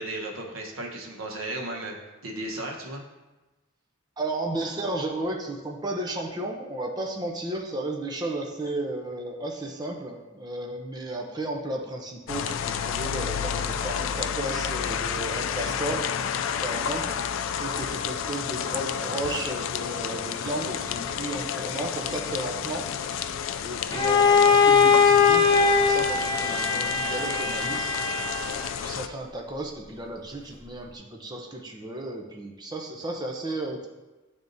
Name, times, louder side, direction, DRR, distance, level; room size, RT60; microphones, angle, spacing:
voice 1, 0.0-2.0 2.2-3.0, right 2 dB, 90° right, 0 dB, 1.1 m, -34 dB
voice 2, 4.2-16.1 16.3-17.2 17.6-23.2 23.6-28.0 28.6-33.9, right 2 dB, 20° right, 1 dB, 0.6 m, -34 dB
sound 1, 12.3-29.1, left 8 dB, 70° left, 0.3 m, -31 dB
Bowed string instrument, 23.9-28.7, left 5 dB, 20° left, 0.6 m, -21 dB
10.5 x 3.5 x 2.6 m, 1.1 s
head